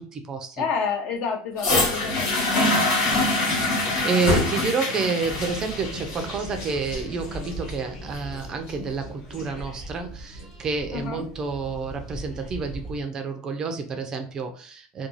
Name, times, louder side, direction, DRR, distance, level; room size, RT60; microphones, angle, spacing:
voice 1, 0.0-0.6 3.6-15.1, right 4 dB, 25° right, 6 dB, 0.4 m, -29 dB
voice 2, 0.6-2.9 10.9-11.3, left 5 dB, 50° left, 4 dB, 0.6 m, -30 dB
sound 1, 1.6-9.6 10.4-10.5, left 2 dB, 70° left, 1.1 m, -25 dB
sound 2, 5.2-13.0, right 1 dB, 20° left, 1.0 m, -40 dB
2.4 x 2.2 x 3.0 m, 0.41 s
cardioid pair, 150°, 2 cm